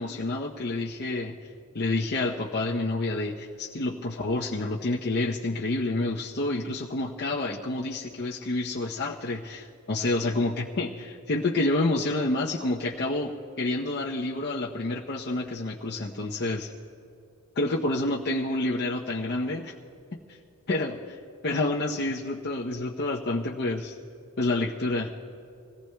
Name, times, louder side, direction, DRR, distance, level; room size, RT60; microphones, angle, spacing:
voice 1, 0.0-1.4 1.7-13.3 13.6-16.7 17.6-19.7 20.3-20.4 20.7-21.2 21.4-24.0 24.4-25.1, left 2 dB, 50° left, -3 dB, 0.7 m, -28 dB
26.0 x 18.0 x 2.3 m, 2.6 s
head